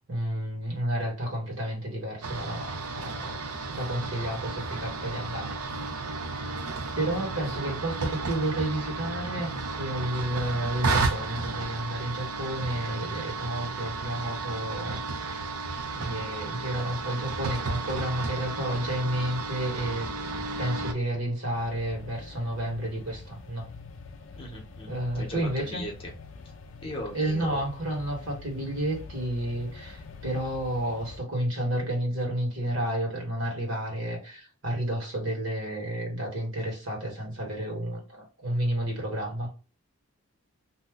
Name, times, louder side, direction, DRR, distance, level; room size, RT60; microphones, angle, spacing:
voice 1, 0.1-3.4 3.7-5.7 6.9-15.5 15.9-20.3 20.6-23.7 24.9-25.8 27.1-39.5, right 1 dB, 60° right, 1.5 m, -31 dB
sound 1, 2.2-20.9, right 3 dB, 80° right, 0.6 m, -33 dB
sound 2, 21.5-31.2, left 4 dB, 55° left, 0.4 m, -45 dB
voice 2, 24.4-26.1 26.8-27.6, equal, 25° left, 0.8 m, -39 dB
2.7 x 2.2 x 3.5 m
head